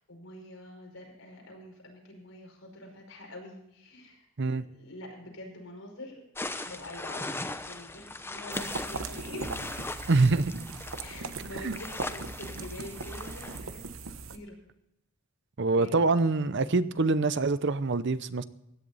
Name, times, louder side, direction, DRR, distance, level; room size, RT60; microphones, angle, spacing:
voice 1, 0.0-6.2 6.6-7.4 7.7-9.8 11.0-14.6 15.8-16.0, left 1 dB, 85° left, 5.3 m, -45 dB
sound 1, 6.4-13.6, left 2 dB, 10° left, 0.8 m, -39 dB
sound 2, 8.5-14.4, right 4 dB, 85° right, 1.0 m, -39 dB
voice 2, 10.1-10.5 11.6-11.7 15.6-18.4, right 3 dB, 60° right, 0.7 m, -25 dB
16.0 x 11.0 x 4.0 m
head